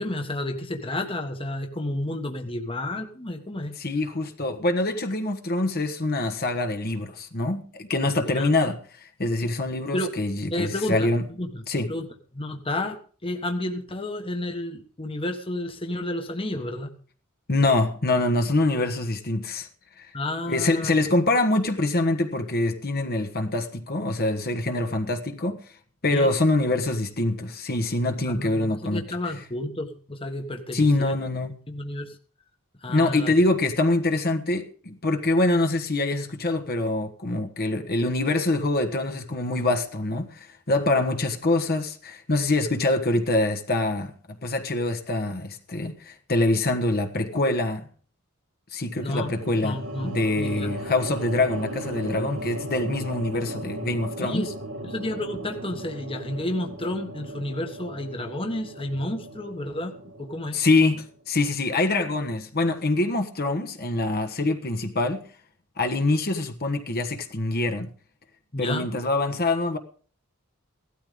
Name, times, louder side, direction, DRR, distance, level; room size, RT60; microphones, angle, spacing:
voice 1, 0.0-3.7 8.2-8.5 9.4-9.5 9.9-10.1 10.5-11.1 11.4-11.6 11.9-12.1 12.3-16.9 20.1-21.0 26.1-26.3 28.2-31.2 31.7-32.2 32.8-33.3 49.0-49.4 49.6-50.8 54.2-54.5 54.8-60.6 68.5-68.9, left 1 dB, 25° left, 1.4 m, -31 dB
voice 2, 3.8-11.2 11.7-11.9 17.5-19.7 20.0-20.1 20.5-25.6 26.0-29.0 30.7-31.5 32.9-44.1 44.4-47.8 48.7-49.8 50.0-54.5 60.5-65.2 65.8-67.9 68.6-69.8, left 2 dB, 45° left, 1.4 m, -25 dB
sound 1, 49.0-61.2, right 1 dB, 65° right, 1.8 m, -37 dB
17.0 x 13.0 x 3.7 m
head